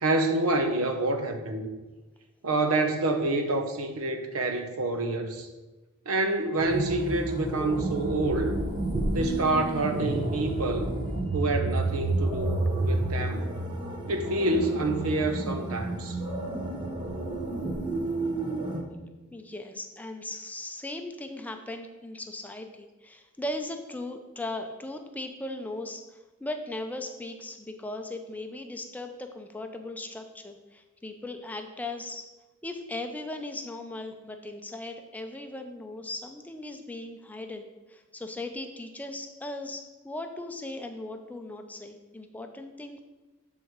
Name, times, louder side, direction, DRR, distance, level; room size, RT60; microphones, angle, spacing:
voice 1, 0.0-1.6 2.4-5.5 6.1-8.6 9.1-10.9 11.3-13.4 14.1-16.2, right 2 dB, 80° right, 6 dB, 0.8 m, -27 dB
sound 1, 6.6-18.8, right 2 dB, 20° right, 0.8 m, -30 dB
voice 2, 19.3-32.3 32.6-43.0, left 2 dB, 5° left, 5 dB, 0.5 m, -38 dB
8.1 x 3.7 x 4.6 m, 1.1 s
head